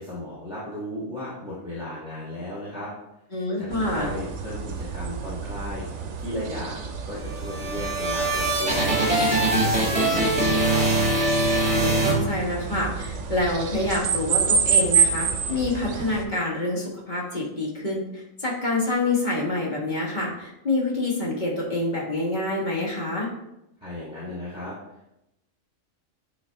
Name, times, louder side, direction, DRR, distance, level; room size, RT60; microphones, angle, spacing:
voice 1, 0.0-2.9 3.6-5.9 6.2-9.0 9.4-10.9 23.8-24.7, left 1 dB, 5° right, -7 dB, 1.3 m, -35 dB
voice 2, 3.3-4.1 11.6-23.3, left 2 dB, 35° left, -3 dB, 1.6 m, -27 dB
sound 1, 3.7-16.2, right 6 dB, 65° right, 1.0 m, -28 dB
sound 2, 7.2-12.8, right 2 dB, 25° right, 1.5 m, -23 dB
9.3 x 3.1 x 3.4 m, 0.86 s
omnidirectional pair, 1.4 m